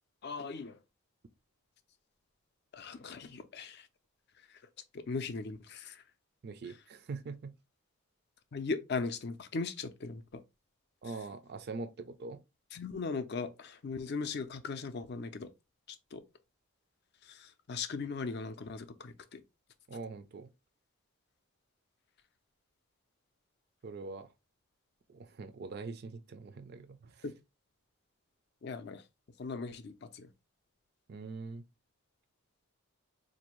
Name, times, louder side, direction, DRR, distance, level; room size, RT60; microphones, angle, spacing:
voice 1, 0.2-0.8 2.7-3.9 4.9-6.0 8.5-10.4 12.7-15.5 16.1-16.2 17.2-19.4 27.2-27.3 28.6-29.0 29.4-30.3, left 4 dB, 50° left, 0.4 m, -38 dB
voice 2, 6.4-7.5 11.0-12.4 19.9-20.5 23.8-24.3 25.1-27.2 31.1-31.6, right 3 dB, 45° right, 0.4 m, -43 dB
4.1 x 2.6 x 3.0 m
head